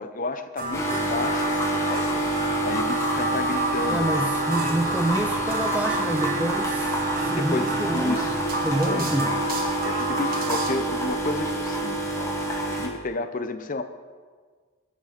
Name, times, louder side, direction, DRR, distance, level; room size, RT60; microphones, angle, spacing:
voice 1, 0.0-4.3 7.3-8.4 8.9-9.1 9.8-12.3 12.7-13.8, left 2 dB, 35° left, 10 dB, 0.6 m, -32 dB
sound 1, 0.6-10.7, right 1 dB, 40° right, 1.4 m, -30 dB
sound 2, 0.7-12.9, right 1 dB, 15° left, 1.4 m, -27 dB
voice 2, 3.9-8.2 8.6-9.4, right 1 dB, 5° right, 6 dB, 0.3 m, -28 dB
18.5 x 6.3 x 5.8 m, 1.6 s
head